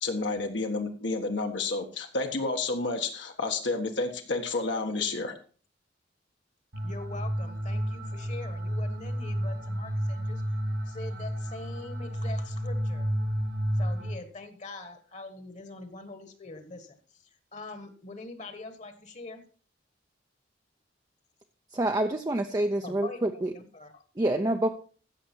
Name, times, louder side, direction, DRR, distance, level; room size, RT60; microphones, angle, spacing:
voice 1, 0.0-5.3, left 3 dB, 70° left, 4 dB, 1.5 m, -30 dB
sound 1, 6.7-14.2, equal, 70° right, 2.4 m, -31 dB
voice 2, 6.8-10.4 10.8-13.1 13.8-19.4 22.8-24.0, left 3 dB, 40° left, 8 dB, 1.5 m, -43 dB
voice 3, 21.7-23.5 24.2-24.7, right 1 dB, 20° right, 5 dB, 0.6 m, -27 dB
15.0 x 6.5 x 4.5 m, 0.40 s
head